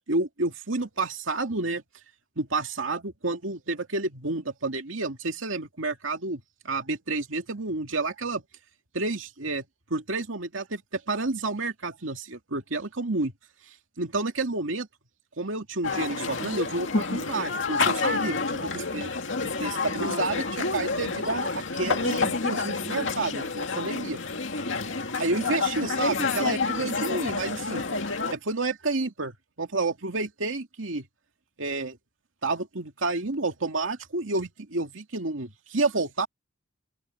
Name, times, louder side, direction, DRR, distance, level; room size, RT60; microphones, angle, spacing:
voice 1, 0.1-1.8 2.4-8.4 8.9-9.6 9.9-13.3 14.0-14.9 15.4-19.1 19.4-24.2 25.2-27.9 28.3-31.1 31.6-32.0 32.4-36.3, right 3 dB, 90° right, 2.4 m, -30 dB
sound 1, 15.8-28.3, left 4 dB, 70° left, 2.4 m, -29 dB
open air
head